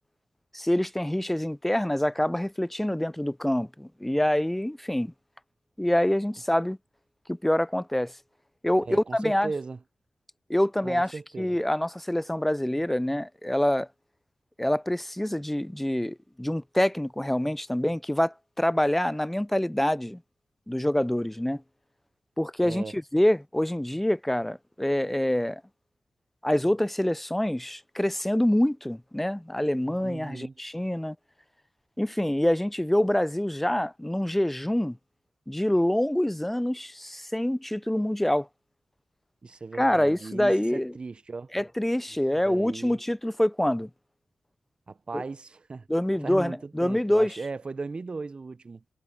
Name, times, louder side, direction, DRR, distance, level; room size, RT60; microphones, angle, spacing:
voice 1, 0.5-5.1 5.8-6.8 7.3-8.1 8.6-9.5 10.5-13.9 14.6-20.2 20.7-21.6 22.4-25.6 26.4-31.2 32.0-35.0 35.5-38.5 39.8-40.9 41.5-43.9 45.1-45.2 45.9-47.4, left 1 dB, 5° left, 0.3 m, -26 dB
voice 2, 8.9-9.8 10.8-11.5 22.6-23.0 30.0-30.5 39.4-41.5 42.4-43.0 44.9-45.9 46.2-48.8, right 4 dB, 45° right, 0.7 m, -37 dB
cardioid pair, 50°, 2 cm